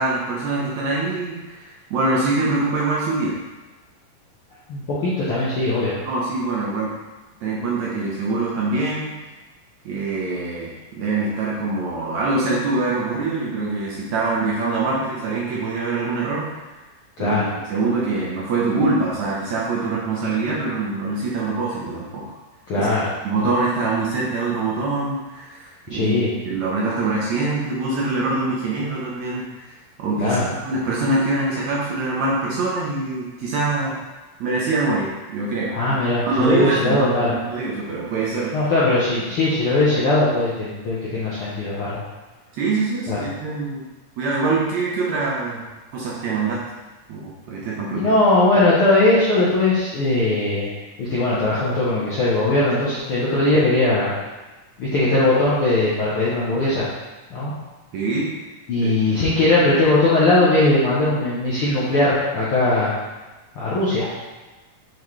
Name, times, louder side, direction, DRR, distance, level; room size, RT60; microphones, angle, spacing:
voice 1, 0.0-1.6 1.9-3.4 6.1-7.0 7.4-9.1 9.9-16.6 17.2-17.4 17.7-22.3 22.8-22.9 23.2-26.2 26.5-34.0 34.4-36.0 36.2-38.6 42.5-43.8 44.2-45.6 45.9-46.7 47.1-48.1 57.9-58.3 58.8-58.9, right 3 dB, 70° right, -5 dB, 1.9 m, -24 dB
voice 2, 4.7-6.0 17.2-17.4 22.7-23.1 25.9-26.3 30.2-30.5 35.7-37.3 38.5-42.0 43.1-43.2 47.9-50.7 51.0-54.1 54.8-56.9 57.3-57.5 58.7-62.9 63.5-64.1, left 2 dB, 70° left, -9 dB, 1.3 m, -19 dB
7.2 x 4.4 x 3.2 m, 1.2 s
omnidirectional pair, 4.0 m